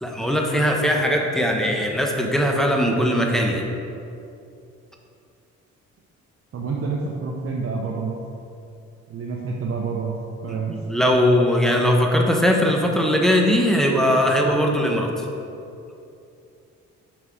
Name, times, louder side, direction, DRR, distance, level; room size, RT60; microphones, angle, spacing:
voice 1, 0.0-3.6 10.5-15.3, equal, ahead, 1 dB, 0.9 m, -20 dB
voice 2, 6.5-8.2 9.1-10.8, right 4 dB, 50° right, -2 dB, 0.8 m, -28 dB
6.1 x 5.4 x 4.7 m, 2.6 s
cardioid pair, 90°, 30 cm